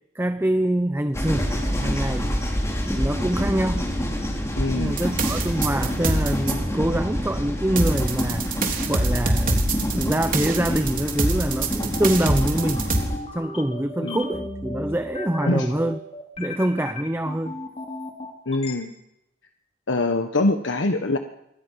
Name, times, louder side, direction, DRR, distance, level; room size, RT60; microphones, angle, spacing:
voice 1, 0.1-2.4 2.8-3.9 4.7-8.5 8.9-9.7 9.9-12.9 13.3-16.0 16.4-17.6, right 1 dB, 10° right, 10 dB, 0.8 m, -25 dB
sound 1, 1.1-13.2, equal, 15° left, 4.2 m, -27 dB
voice 2, 4.6-5.0 14.0-14.2 15.5-15.7 18.5-18.9 19.9-21.2, left 2 dB, 70° left, 5 dB, 1.4 m, -23 dB
sound 2, 5.0-6.5 7.8-13.0, right 2 dB, 45° right, 3.7 m, -24 dB
sound 3, 10.5-18.7, left 2 dB, 35° left, 3.9 m, -35 dB
26.5 x 24.0 x 5.7 m, 0.86 s
head